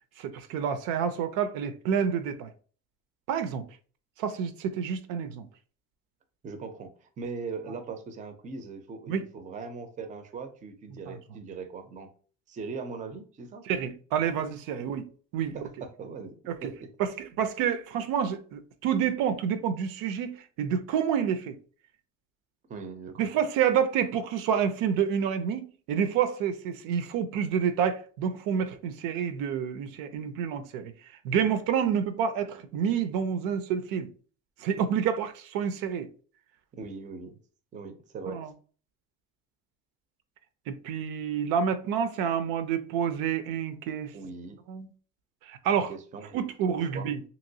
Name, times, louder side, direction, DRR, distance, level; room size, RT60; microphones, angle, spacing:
voice 1, 0.2-2.5 3.3-3.7 4.2-5.5 9.1-9.2 11.1-11.2 13.6-15.1 15.3-15.6 16.5-16.7 17.0-21.6 23.2-30.9 31.2-34.1 34.6-36.1 38.3-38.5 40.7-44.1 44.7-44.9 45.4-45.9 46.3-47.2, right 8 dB, 80° right, 0.5 m, -28 dB
voice 2, 6.4-12.1 12.5-13.6 14.7-14.9 15.5-16.9 22.7-23.3 36.7-37.4 37.7-38.4 44.1-44.6 45.9-47.1, right 4 dB, 25° right, 0.4 m, -40 dB
2.9 x 2.9 x 2.7 m
cardioid pair, 145°, 33 cm